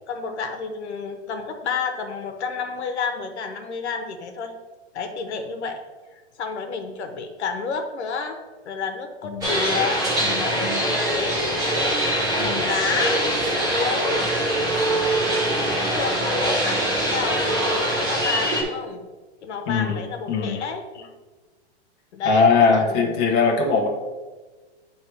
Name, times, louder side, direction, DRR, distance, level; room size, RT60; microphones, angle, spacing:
voice 1, 0.1-4.5 4.9-5.8 6.1-10.0 10.4-11.4 12.4-13.2 13.6-14.3 15.0-19.1 19.4-21.1 22.1-23.1, left 5 dB, 75° left, 5 dB, 1.1 m, -30 dB
sound 1, 9.4-18.6, right 1 dB, 10° right, 1.1 m, -23 dB
voice 2, 10.2-10.8 12.4-12.6 19.7-20.0 20.3-20.6 22.2-23.9, left 4 dB, 25° left, -1 dB, 0.7 m, -21 dB
8.8 x 3.3 x 4.4 m, 1.3 s
supercardioid pair, 170°, 34 cm